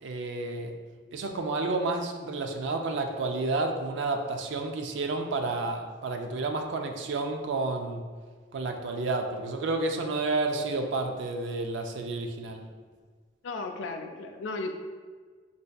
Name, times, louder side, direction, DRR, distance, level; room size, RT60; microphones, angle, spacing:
voice 1, 0.0-0.7 1.1-8.0 8.5-12.6, right 3 dB, 70° right, 4 dB, 0.4 m, -30 dB
voice 2, 13.4-14.7, left 3 dB, 85° left, 5 dB, 0.4 m, -35 dB
4.3 x 2.6 x 2.3 m, 1.5 s
head